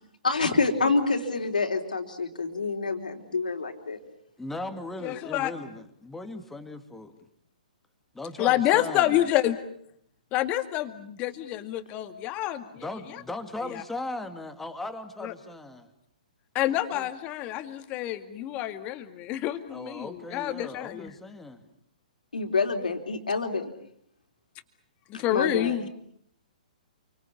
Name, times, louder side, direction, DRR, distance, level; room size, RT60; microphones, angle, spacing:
voice 1, 0.2-4.0 22.3-23.7 25.3-25.8, left 4 dB, 75° left, 5 dB, 3.8 m, -27 dB
voice 2, 4.4-7.1 8.1-9.3 12.7-15.9 16.7-17.1 19.7-21.6, left 2 dB, 5° left, 6 dB, 2.4 m, -38 dB
voice 3, 5.0-5.5 8.4-9.6 10.3-12.8 13.7-13.8 15.2-15.3 16.5-21.1 25.1-25.9, left 13 dB, 30° left, 9 dB, 2.2 m, -28 dB
28.5 x 25.0 x 7.2 m, 0.67 s
figure-of-eight pair, 125°, 4 cm